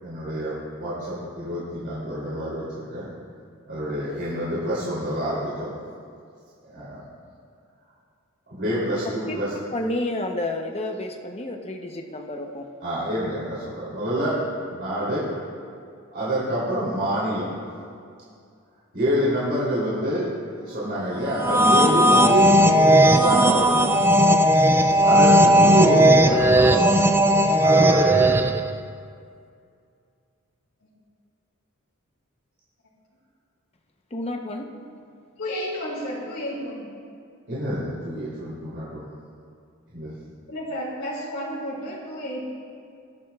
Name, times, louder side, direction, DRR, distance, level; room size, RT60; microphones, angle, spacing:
voice 1, 0.0-3.1 3.7-5.7 6.6-7.0 8.5-9.5 12.8-14.4 14.7-15.2 16.1-17.5 18.9-20.3 20.5-24.1 25.0-26.9 27.6-28.4 37.5-39.0 39.9-40.1, equal, 55° right, -9 dB, 3.2 m, -27 dB
voice 2, 9.7-12.7 34.1-34.7, left 1 dB, 30° left, 3 dB, 0.8 m, -30 dB
sound 1, 21.3-28.7, right 1 dB, 10° right, 0.3 m, -16 dB
voice 3, 35.4-36.8 40.5-42.4, equal, 85° left, -7 dB, 2.9 m, -31 dB
20.5 x 10.5 x 2.4 m, 2.3 s
head